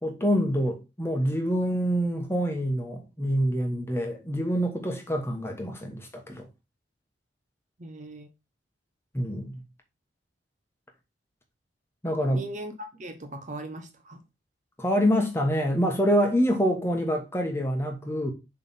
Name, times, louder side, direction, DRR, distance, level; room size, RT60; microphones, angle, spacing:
voice 1, 0.0-6.5 9.1-9.6 12.0-12.4 14.8-18.3, equal, 15° left, 1.2 m, -26 dB
voice 2, 7.8-8.3 12.3-14.2, right 1 dB, 40° right, 0.8 m, -39 dB
7.0 x 3.4 x 4.3 m
head